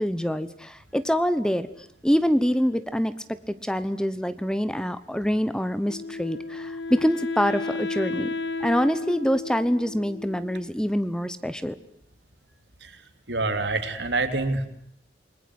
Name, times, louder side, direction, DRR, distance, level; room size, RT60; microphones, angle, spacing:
voice 1, 0.0-1.7 2.0-3.1 3.5-8.3 8.6-11.8, equal, 5° left, 14 dB, 1.0 m, -25 dB
Wind instrument woodwind instrument, 5.8-10.9, left 3 dB, 90° left, 1.8 m, -33 dB
voice 2, 13.3-14.7, right 2 dB, 85° right, 8 dB, 3.1 m, -26 dB
29.0 x 20.5 x 7.9 m, 0.69 s
head